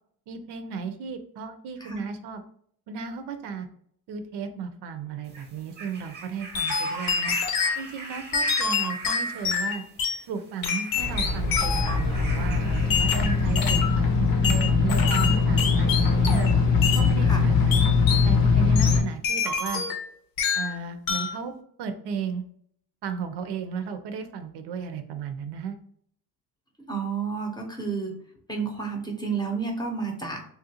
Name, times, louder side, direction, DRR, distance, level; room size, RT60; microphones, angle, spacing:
voice 1, 0.3-2.4 2.9-3.7 4.1-7.3 7.8-9.8 10.3-16.5 16.9-17.9 18.2-19.8 20.6-21.5 21.8-22.4 23.0-25.8, right 6 dB, 80° right, 9 dB, 0.6 m, -34 dB
sound 1, 5.2-13.9 14.8-14.9, right 2 dB, 25° right, 0.7 m, -41 dB
sound 2, 6.5-7.8 8.3-10.2 10.6-12.0 12.9-14.0 14.4-16.5 16.8-17.1 17.7-18.3 18.8-20.1 20.4-20.8 21.1-21.4, left 6 dB, 55° left, 0.7 m, -27 dB
sound 3, 11.0-19.0, left 4 dB, 90° left, 0.9 m, -22 dB
voice 2, 26.9-28.2 28.5-30.5, right 5 dB, 10° left, 1 dB, 0.7 m, -31 dB
3.3 x 2.5 x 2.8 m, 0.64 s
cardioid pair, 120°, 40 cm